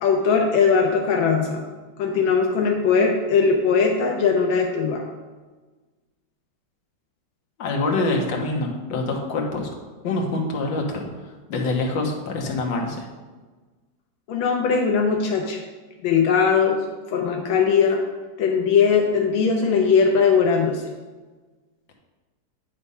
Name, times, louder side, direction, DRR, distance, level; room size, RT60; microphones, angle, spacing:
voice 1, 0.0-1.6 2.0-5.1 14.3-15.6 16.0-16.8 17.1-18.0 18.4-20.8, left 5 dB, 90° left, 1 dB, 1.5 m, -20 dB
voice 2, 7.6-9.7 10.0-13.1, left 2 dB, 70° left, 0 dB, 1.8 m, -25 dB
9.5 x 3.4 x 5.4 m, 1.3 s
omnidirectional pair, 2.1 m